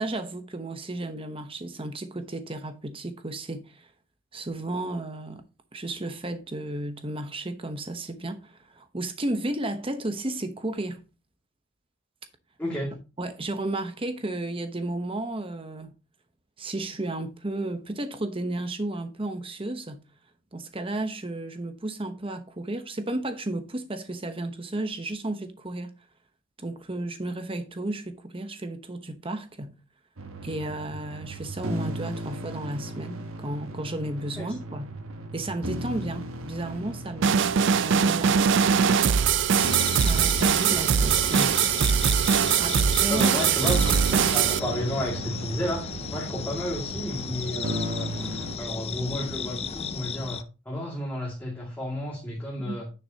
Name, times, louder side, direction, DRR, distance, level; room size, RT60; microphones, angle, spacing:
voice 1, 0.0-3.9 4.3-5.4 5.7-11.0 13.2-15.9 16.6-20.0 20.5-25.9 26.6-29.8 30.4-34.9 35.3-38.5 39.9-41.6 42.3-43.3 44.2-44.3 52.6-52.8, right 2 dB, 25° right, 0.9 m, -33 dB
voice 2, 12.6-12.9 34.4-34.5 42.6-42.7 43.1-48.1 48.6-52.9, equal, 10° left, 2.2 m, -32 dB
sound 1, 30.2-48.6, right 2 dB, 75° right, 1.1 m, -36 dB
sound 2, 37.2-44.6, right 7 dB, 55° right, 0.4 m, -22 dB
sound 3, 39.5-50.4, left 6 dB, 30° left, 0.4 m, -35 dB
9.6 x 6.7 x 2.8 m
head